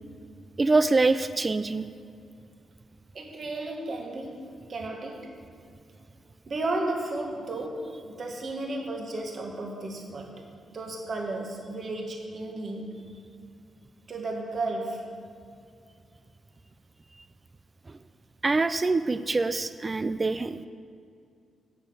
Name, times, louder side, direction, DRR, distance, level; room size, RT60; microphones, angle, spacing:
voice 1, 0.6-1.9 18.4-20.7, right 3 dB, 30° right, 12 dB, 0.4 m, -24 dB
voice 2, 3.1-5.3 6.5-10.4 10.7-13.1 14.1-15.1, right 2 dB, 50° right, 0 dB, 1.8 m, -34 dB
9.7 x 6.9 x 8.3 m, 2.4 s
cardioid pair, 95°, 0 cm